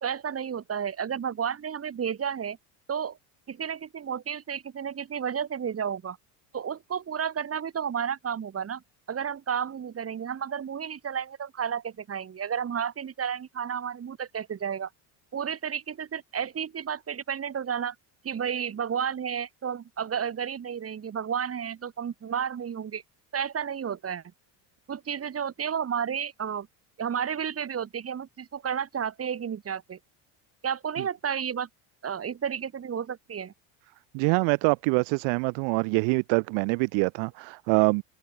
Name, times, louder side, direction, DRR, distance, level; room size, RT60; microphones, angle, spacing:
voice 1, 0.0-2.6 2.9-3.2 3.5-6.2 6.5-8.8 9.1-14.9 15.3-18.0 18.2-23.0 23.3-24.2 24.9-26.7 27.0-30.0 30.6-31.7 32.0-33.5, right 8 dB, 30° right, 2.2 m, -32 dB
voice 2, 34.1-38.0, right 33 dB, 75° right, 0.9 m, -24 dB
supercardioid pair, 105°, 46 cm